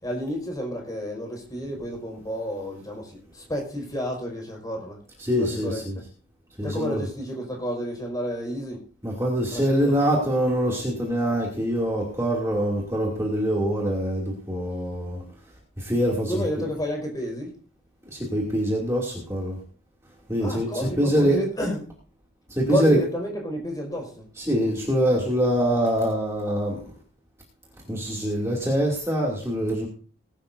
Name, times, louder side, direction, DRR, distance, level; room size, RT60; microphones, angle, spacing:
voice 1, 0.0-5.0 5.4-5.8 6.6-8.8 9.5-9.9 16.3-17.5 20.4-21.9 22.7-24.2, equal, 20° left, 5.0 m, -30 dB
voice 2, 5.2-6.0 6.6-7.0 9.0-15.2 15.8-16.4 18.1-19.6 20.3-21.4 22.5-23.0 24.4-26.9 27.9-29.9, equal, 15° right, 2.6 m, -24 dB
20.0 x 11.5 x 2.7 m
head